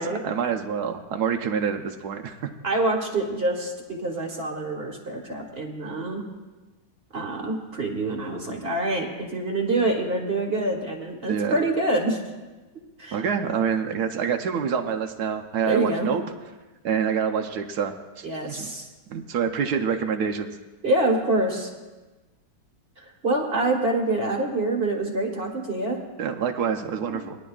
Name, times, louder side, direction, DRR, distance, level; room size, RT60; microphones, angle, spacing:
voice 1, 0.0-2.4 11.3-11.6 13.1-16.2 16.8-18.7 19.1-20.6 26.2-27.4, right 7 dB, 70° right, 5 dB, 1.0 m, -27 dB
voice 2, 2.6-6.2 7.1-12.2 13.0-13.2 15.6-16.1 18.2-18.9 20.8-21.7 23.0-26.0, right 2 dB, 35° right, 1 dB, 1.1 m, -26 dB
19.5 x 10.5 x 2.3 m, 1.2 s
omnidirectional pair, 2.2 m